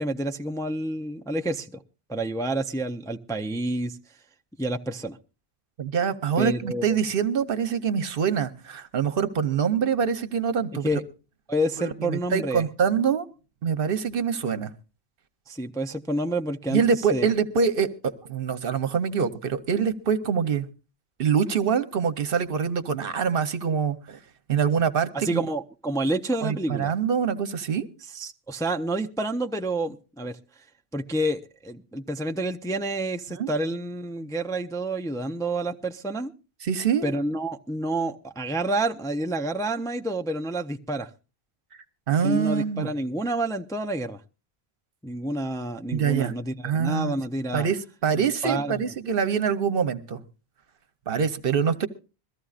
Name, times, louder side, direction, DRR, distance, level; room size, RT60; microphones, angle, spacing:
voice 1, 0.0-1.8 2.1-4.0 4.6-5.2 6.4-7.0 10.8-11.0 11.5-12.7 15.5-16.8 17.1-17.3 25.1-26.9 28.1-30.4 30.9-36.3 37.0-41.1 42.2-44.2 45.0-47.7 48.1-48.9, right 1 dB, 5° left, 0.4 m, -29 dB
voice 2, 5.8-10.9 11.8-13.2 13.6-14.7 16.7-20.7 21.2-24.2 24.5-25.4 26.4-27.9 33.3-33.5 36.6-37.1 42.1-42.9 45.9-46.3 46.6-47.2 47.5-50.2 51.1-51.9, right 7 dB, 65° right, 1.0 m, -25 dB
22.0 x 14.0 x 2.4 m
omnidirectional pair, 1.0 m